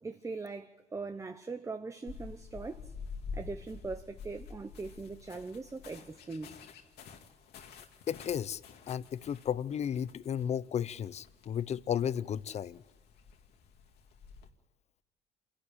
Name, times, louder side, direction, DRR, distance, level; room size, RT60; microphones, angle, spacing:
voice 1, 0.0-2.9 3.3-6.6, right 3 dB, 20° right, 0.8 m, -41 dB
sound 1, 2.1-14.5, left 5 dB, 70° left, 2.3 m, -49 dB
voice 2, 8.1-8.6 8.9-12.8, left 9 dB, 40° left, 0.6 m, -34 dB
27.5 x 11.5 x 10.0 m
cardioid pair, 110°, 17 cm